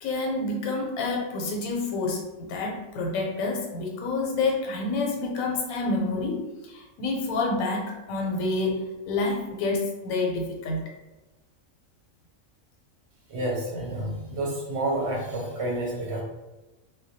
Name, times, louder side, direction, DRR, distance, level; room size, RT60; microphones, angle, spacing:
voice 1, 0.0-10.8, left 3 dB, 90° left, 0 dB, 1.0 m, -28 dB
voice 2, 13.3-16.2, right 1 dB, 65° right, -3 dB, 0.8 m, -29 dB
2.1 x 2.1 x 2.6 m, 1.1 s
omnidirectional pair, 1.4 m